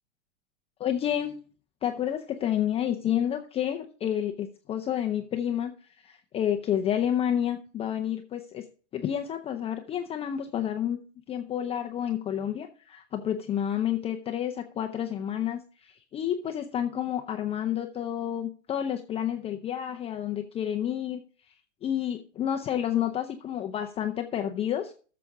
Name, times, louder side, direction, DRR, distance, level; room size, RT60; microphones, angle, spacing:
voice 1, 0.8-1.3 1.8-8.6 8.9-11.0 11.3-21.5 21.8-24.9, left 10 dB, 15° left, 4 dB, 0.6 m, -30 dB
13.0 x 6.9 x 3.5 m, 0.38 s
hypercardioid pair, 115°, 38 cm